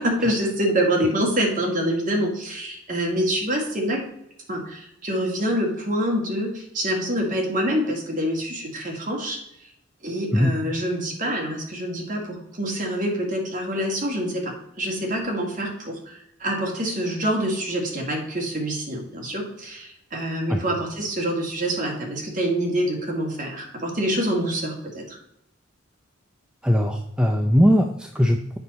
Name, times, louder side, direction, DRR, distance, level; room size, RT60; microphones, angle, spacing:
voice 1, 0.0-4.0 4.5-9.4 10.0-25.2, equal, 40° right, 0 dB, 1.9 m, -26 dB
voice 2, 26.6-28.6, equal, 5° right, 3 dB, 0.4 m, -20 dB
7.9 x 5.6 x 4.1 m, 0.78 s
head